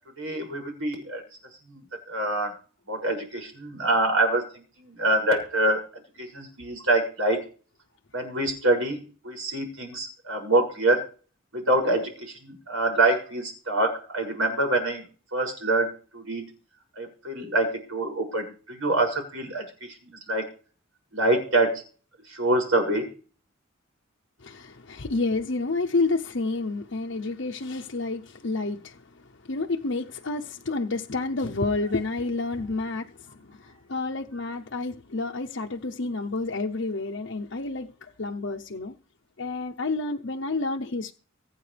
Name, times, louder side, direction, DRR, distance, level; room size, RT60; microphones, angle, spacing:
voice 1, 0.2-1.2 1.7-2.5 2.9-5.8 6.2-7.4 8.1-11.1 11.5-16.5 17.0-20.5 21.1-21.8 22.3-23.1, right 2 dB, 85° right, 7.0 m, -26 dB
voice 2, 24.4-29.0 29.5-33.1 33.4-38.9 39.4-41.1, left 3 dB, 60° left, 0.8 m, -29 dB
25.0 x 8.9 x 3.4 m
head